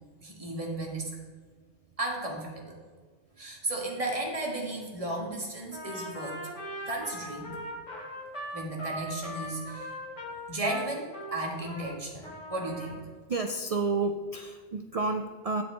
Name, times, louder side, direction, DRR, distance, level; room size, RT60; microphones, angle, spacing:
voice 1, 0.2-1.1 2.0-2.7 3.4-6.4 6.9-7.6 8.5-9.9 10.5-13.0, right 2 dB, 30° right, -1 dB, 1.6 m, -34 dB
Trumpet, 5.7-11.9 12.2-13.0, equal, 85° left, 2.1 m, -40 dB
voice 2, 13.3-15.6, right 3 dB, 70° right, 5 dB, 0.3 m, -30 dB
8.7 x 6.3 x 4.4 m, 1.5 s
omnidirectional pair, 1.2 m